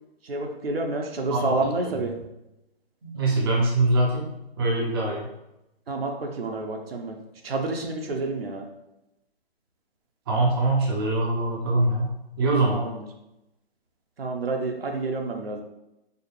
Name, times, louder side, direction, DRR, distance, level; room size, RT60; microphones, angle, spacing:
voice 1, 0.2-2.1 5.9-7.2 7.4-8.7 12.7-13.0 14.2-15.6, right 3 dB, 65° right, 2 dB, 0.8 m, -29 dB
voice 2, 3.0-4.3 4.6-5.3 10.3-12.1 12.4-12.8, right 2 dB, 25° right, -3 dB, 0.6 m, -23 dB
4.7 x 2.1 x 3.2 m, 0.90 s
figure-of-eight pair, 145°, 31 cm